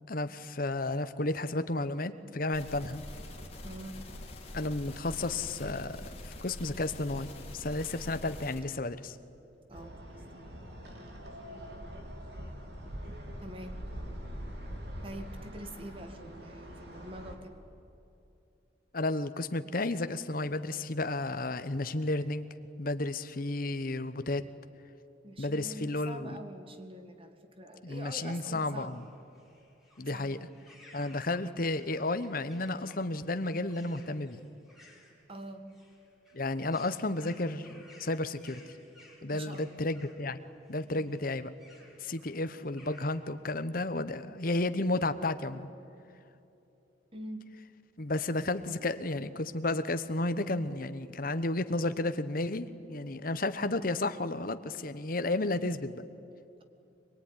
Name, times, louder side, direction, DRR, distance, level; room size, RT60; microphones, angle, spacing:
voice 1, 0.1-3.1 4.5-9.2 18.9-22.5 22.8-24.4 25.4-26.4 27.8-29.0 30.0-30.4 30.9-34.4 36.3-38.6 39.2-40.4 40.7-41.5 42.0-45.7 48.0-56.0, left 2 dB, 50° left, 11 dB, 1.0 m, -32 dB
sound 1, 2.5-8.6, left 1 dB, 35° left, 3.2 m, -45 dB
voice 2, 3.6-4.0 9.7-9.9 13.4-13.8 15.0-17.6 25.2-29.0 30.1-30.5 35.3-35.7 39.3-39.8 40.9-41.1 41.8-41.9 47.1-47.5, right 1 dB, 30° right, 7 dB, 1.9 m, -45 dB
sound 2, 9.7-17.3, equal, 60° right, 3.3 m, -43 dB
sound 3, 28.0-43.3, left 2 dB, ahead, 4.1 m, -60 dB
23.5 x 22.0 x 9.8 m, 2.8 s
head